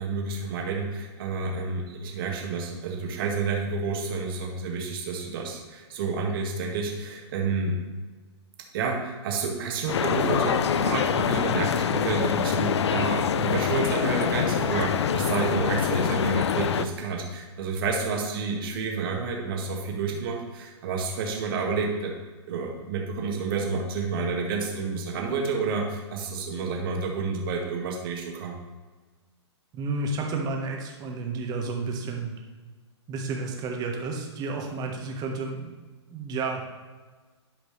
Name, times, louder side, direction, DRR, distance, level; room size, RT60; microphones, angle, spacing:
voice 1, 0.0-7.8 8.7-22.1 22.5-28.6, right 4 dB, 50° right, 0 dB, 1.8 m, -29 dB
sound 1, 9.9-16.9, left 8 dB, 70° left, 0.5 m, -25 dB
voice 2, 29.7-32.3 33.1-35.7 36.1-36.7, right 3 dB, 25° right, 1 dB, 1.5 m, -31 dB
12.0 x 5.1 x 3.3 m, 1.3 s
hypercardioid pair, 120°, 15 cm